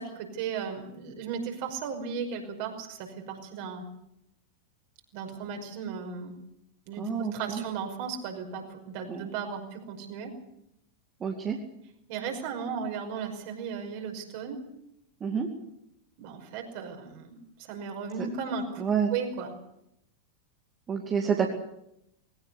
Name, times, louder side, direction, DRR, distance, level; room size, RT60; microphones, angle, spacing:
voice 1, 0.0-3.9 5.1-6.4 6.9-10.3 12.1-14.6 16.2-17.4 17.7-18.8 19.1-19.5, right 6 dB, 45° right, 4 dB, 5.6 m, -35 dB
voice 2, 7.0-7.6 9.1-9.3 11.2-11.6 15.2-15.5 18.8-19.2 20.9-21.5, right 7 dB, 20° right, 1 dB, 2.6 m, -28 dB
21.0 x 18.0 x 8.2 m, 0.80 s
figure-of-eight pair, 90°, 0 cm